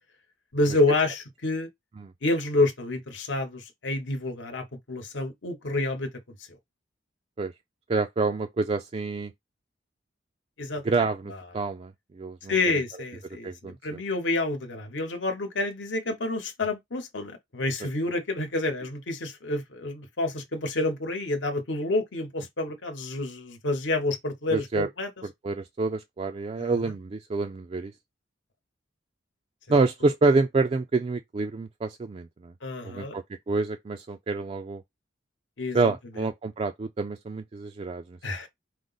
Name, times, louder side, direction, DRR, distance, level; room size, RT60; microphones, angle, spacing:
voice 1, 0.5-1.7 2.2-6.1 10.6-11.4 12.5-25.1 26.6-26.9 32.6-33.2 35.6-35.9 38.2-38.5, left 2 dB, 70° left, 1.0 m, -28 dB
voice 2, 7.9-9.3 10.8-12.5 13.4-14.0 17.8-17.9 24.5-24.9 25.4-27.9 29.7-32.5 32.8-34.8 35.7-38.2, right 3 dB, 30° right, 0.3 m, -27 dB
4.9 x 2.0 x 3.9 m
head